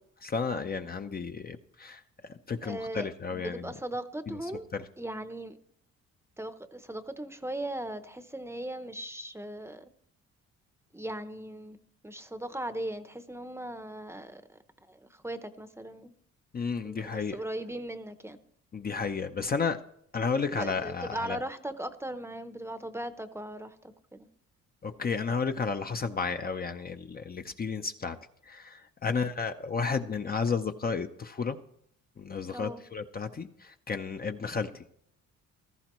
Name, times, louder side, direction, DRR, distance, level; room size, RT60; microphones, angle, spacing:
voice 1, 0.2-2.0 2.5-3.7 4.3-4.4 4.7-4.8 16.5-17.4 18.7-19.8 20.1-21.4 24.8-28.2 28.5-31.6 32.2-34.8, left 5 dB, 30° left, 7 dB, 0.6 m, -32 dB
voice 2, 2.6-4.6 5.0-5.6 6.4-9.9 10.9-11.8 12.0-14.6 14.9-16.1 16.8-18.4 20.6-24.3 29.1-29.3 32.5-32.8, right 1 dB, 10° right, 10 dB, 0.8 m, -38 dB
16.0 x 13.5 x 3.1 m, 0.70 s
cardioid pair, 90°, 30 cm